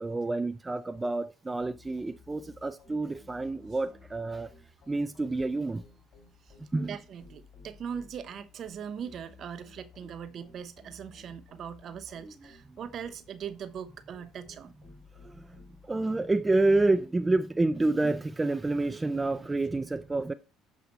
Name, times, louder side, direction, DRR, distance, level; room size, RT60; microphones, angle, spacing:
voice 1, 0.0-4.5 4.9-5.8 6.7-7.0 12.2-12.3 12.7-12.8 15.2-20.3, right 2 dB, 15° right, 0.5 m, -28 dB
sound 1, 1.6-16.8, left 4 dB, 60° left, 3.7 m, -56 dB
voice 2, 6.4-14.7, right 8 dB, 50° right, 0.9 m, -40 dB
7.8 x 5.0 x 4.2 m
hypercardioid pair, 75°, 0 cm